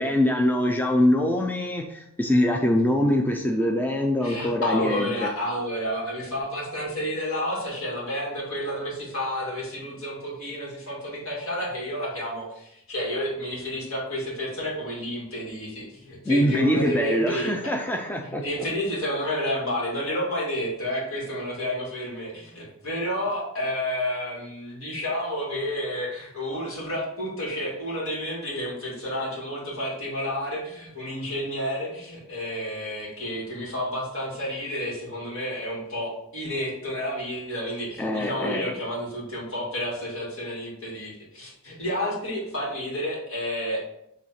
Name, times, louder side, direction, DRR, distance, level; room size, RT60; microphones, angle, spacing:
voice 1, 0.0-5.3 16.3-18.7 38.0-38.7, left 1 dB, 10° left, 2 dB, 0.4 m, -23 dB
voice 2, 4.2-17.5 18.4-43.8, equal, 65° left, -4 dB, 2.3 m, -30 dB
7.6 x 3.2 x 4.3 m, 0.79 s
head